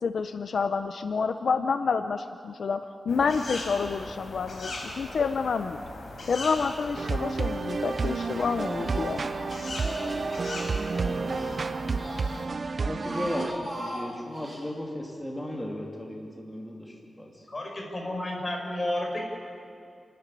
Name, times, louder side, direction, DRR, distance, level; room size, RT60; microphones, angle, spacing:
voice 1, 0.0-5.8 6.3-9.2, left 5 dB, 75° left, 9 dB, 0.7 m, -28 dB
sound 1, 3.1-12.5, left 2 dB, 55° left, 4.3 m, -40 dB
Speech, 6.8-7.5 7.8-10.6 11.0-12.5 12.8-14.6, right 1 dB, 20° right, 6.9 m, -40 dB
sound 2, 7.0-13.5, right 4 dB, 45° right, 0.5 m, -30 dB
voice 2, 10.8-11.5 12.6-17.5, left 1 dB, 10° left, -1 dB, 2.7 m, -36 dB
voice 3, 17.5-19.2, left 1 dB, 30° left, 0 dB, 5.2 m, -31 dB
29.5 x 13.0 x 9.9 m, 2.4 s
wide cardioid pair, 150°, 0 cm